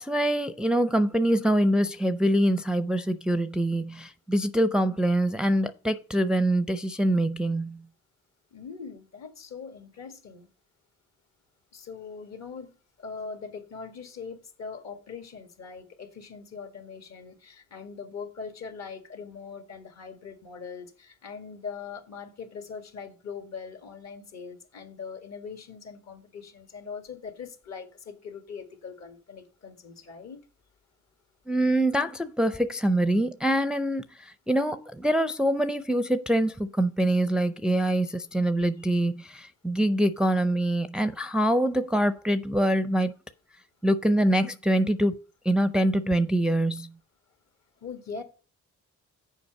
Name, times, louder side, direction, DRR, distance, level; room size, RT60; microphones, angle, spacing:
voice 1, 0.0-7.9 31.5-43.1 43.8-45.2 45.4-46.9, right 1 dB, 5° right, 0.5 m, -24 dB
voice 2, 8.5-10.5 11.7-12.7 13.0-30.4 37.0-37.1 38.4-38.9 47.8-48.2, left 5 dB, 60° left, 1.8 m, -41 dB
7.1 x 5.0 x 6.6 m
cardioid pair, 90°, 30 cm